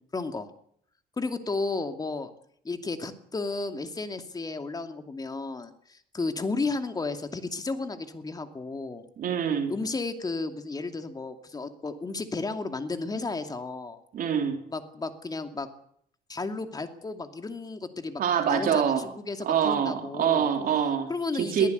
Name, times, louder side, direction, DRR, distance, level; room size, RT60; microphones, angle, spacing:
voice 1, 0.1-0.5 1.2-2.3 2.6-9.1 9.7-14.0 14.7-15.7 16.3-18.2 18.5-20.5 21.1-21.7, left 3 dB, 20° left, 7 dB, 2.6 m, -33 dB
voice 2, 9.2-9.7 14.1-14.6 18.2-19.0 19.4-21.1 21.3-21.7, right 8 dB, 55° right, 4 dB, 3.8 m, -25 dB
22.5 x 15.5 x 8.2 m, 0.67 s
cardioid pair, 110°, 17 cm